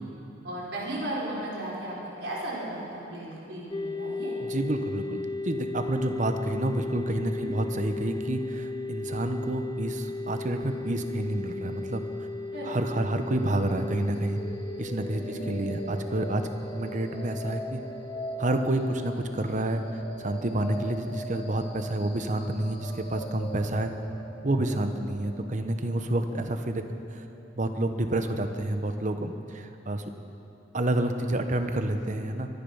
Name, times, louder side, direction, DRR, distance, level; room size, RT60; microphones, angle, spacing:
voice 1, 0.4-4.3 7.4-7.5 12.5-12.8 15.1-15.5, right 1 dB, 75° right, -6 dB, 4.9 m, -35 dB
sound 1, 3.7-21.1, left 3 dB, 20° left, 0.7 m, -37 dB
voice 2, 4.4-12.0 12.6-14.4 14.8-16.4 16.7-17.8 18.4-23.9 24.4-26.8 27.1-27.2 27.5-30.0 30.7-32.5, right 1 dB, 45° right, 7 dB, 1.0 m, -29 dB
sound 2, 14.3-28.3, equal, 60° left, 3.1 m, -42 dB
24.0 x 10.5 x 5.6 m, 2.9 s
head